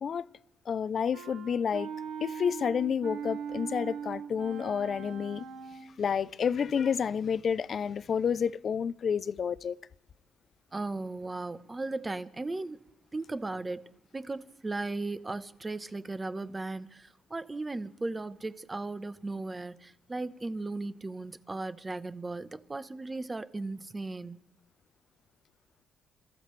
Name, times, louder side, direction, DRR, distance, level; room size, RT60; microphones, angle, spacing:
voice 1, 0.7-1.9 2.2-5.4 6.0-9.8, left 7 dB, 50° left, 0.5 m, -30 dB
Wind instrument woodwind instrument, 1.1-6.0, right 7 dB, 80° right, 2.4 m, -40 dB
voice 2, 10.7-12.9 13.1-13.8 14.1-24.4, right 2 dB, 20° right, 0.9 m, -36 dB
28.0 x 14.5 x 3.3 m
cardioid pair, 90°, 0 cm